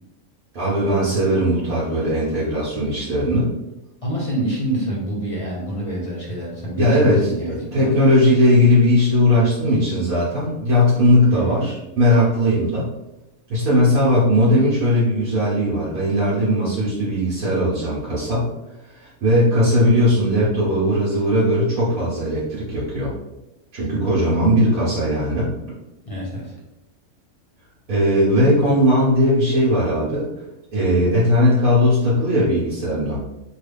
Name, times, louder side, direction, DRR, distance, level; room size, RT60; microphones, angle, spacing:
voice 1, 0.5-3.5 6.8-12.9 13.5-18.5 18.9-23.1 23.7-25.5 27.9-30.3 30.7-33.2, equal, 80° right, -8 dB, 1.3 m, -18 dB
voice 2, 4.0-7.9 11.3-11.6 26.1-26.5, right 1 dB, 35° left, -4 dB, 0.6 m, -27 dB
3.3 x 2.3 x 3.3 m, 0.96 s
omnidirectional pair, 1.5 m